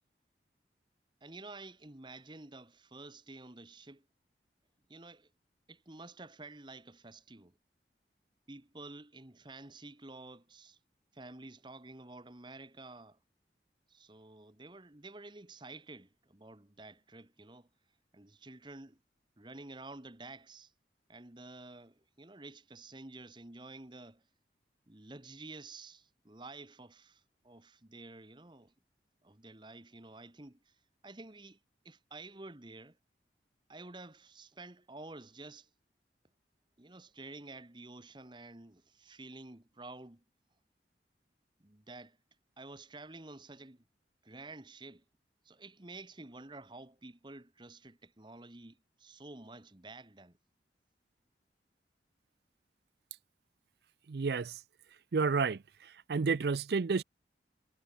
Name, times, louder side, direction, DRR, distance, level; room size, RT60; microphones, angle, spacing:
voice 1, 1.2-4.1 4.9-5.3 5.7-7.5 8.5-10.8 11.1-13.2 13.9-17.7 18.1-19.0 19.4-20.7 21.1-24.2 24.9-28.7 29.2-30.7 31.0-31.6 31.8-33.0 33.7-35.7 36.8-40.2 41.6-42.2 42.6-43.8 44.2-45.0 45.4-50.4, right 2 dB, 25° right, 1.3 m, -50 dB
voice 2, 54.1-54.5 55.1-55.6 56.1-57.0, right 4 dB, 65° right, 0.5 m, -30 dB
head